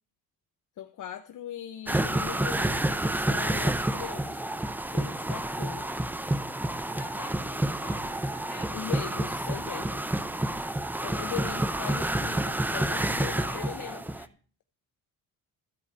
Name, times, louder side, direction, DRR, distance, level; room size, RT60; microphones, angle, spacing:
voice 1, 0.8-4.4 4.9-6.0 8.7-10.1 11.0-14.0, left 10 dB, 55° left, 0.8 m, -40 dB
sound 1, 1.9-14.2, right 1 dB, 5° right, 0.5 m, -29 dB
voice 2, 6.9-8.8 11.1-12.0 13.2-14.3, left 3 dB, 25° left, 2.8 m, -49 dB
13.5 x 4.8 x 8.7 m
cardioid pair, 115°, 37 cm